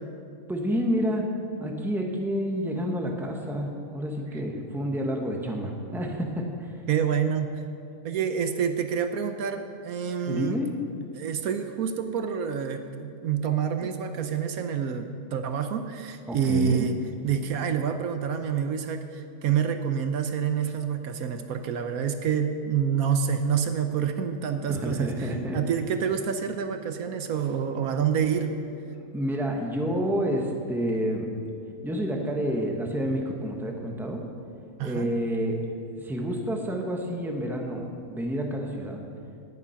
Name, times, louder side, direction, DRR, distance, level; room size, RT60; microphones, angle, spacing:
voice 1, 0.5-1.2 1.6-6.8 10.2-10.7 16.3-16.9 24.7-25.6 29.1-31.3 31.8-34.2 34.8-35.6 36.0-39.0, equal, ahead, 1 dB, 1.1 m, -29 dB
voice 2, 6.9-7.5 8.0-10.5 11.1-28.5 34.8-35.1, right 7 dB, 70° right, 7 dB, 1.2 m, -27 dB
18.0 x 7.2 x 5.8 m, 2.5 s
omnidirectional pair, 1.6 m